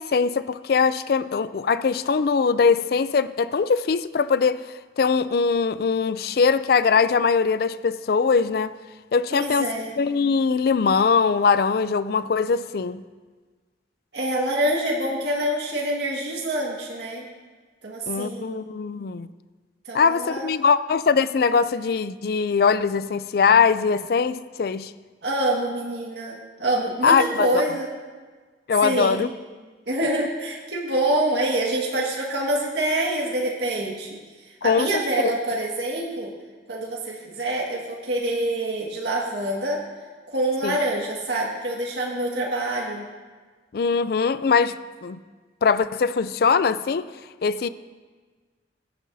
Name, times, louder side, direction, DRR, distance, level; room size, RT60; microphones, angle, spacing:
voice 1, 0.0-4.7 5.0-8.7 9.1-13.0 18.1-19.3 19.9-24.9 27.0-27.5 28.7-29.3 34.6-34.9 35.2-35.4 40.6-40.8 43.7-45.2 45.6-47.1 47.4-47.7, left 5 dB, 60° left, 0.4 m, -21 dB
voice 2, 9.3-9.9 14.1-17.2 17.8-18.7 19.9-20.5 25.2-27.9 28.8-29.3 29.9-34.2 34.6-36.3 36.7-39.8 40.3-43.0, right 1 dB, 80° right, 1.8 m, -26 dB
16.5 x 10.5 x 2.7 m
head